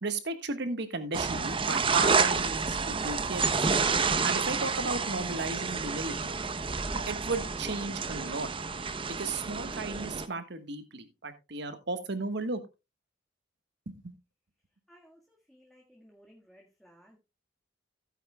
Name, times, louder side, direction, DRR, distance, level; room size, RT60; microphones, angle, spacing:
voice 1, 0.0-3.7 4.2-6.4 7.1-8.5 9.2-12.6 13.9-14.1, right 3 dB, 65° right, 10 dB, 1.4 m, -35 dB
sound 1, 1.1-10.3, right 5 dB, 30° right, 0.7 m, -29 dB
voice 2, 14.9-17.2, equal, ahead, -1 dB, 1.6 m, -59 dB
15.5 x 9.1 x 2.2 m, 0.25 s
head